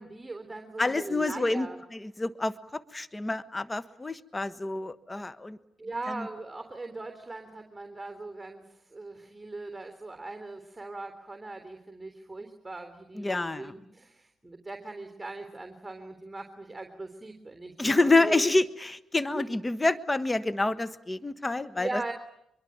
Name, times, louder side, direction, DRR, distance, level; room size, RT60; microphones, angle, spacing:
voice 1, 0.0-1.8 5.8-18.5 19.3-19.5 21.8-22.1, right 2 dB, 15° right, 6 dB, 3.5 m, -40 dB
voice 2, 0.8-5.6 6.1-6.3 13.2-13.7 17.8-22.0, left 2 dB, 20° left, 14 dB, 1.4 m, -28 dB
25.0 x 23.0 x 9.4 m, 0.82 s
hypercardioid pair, 50°, 0 cm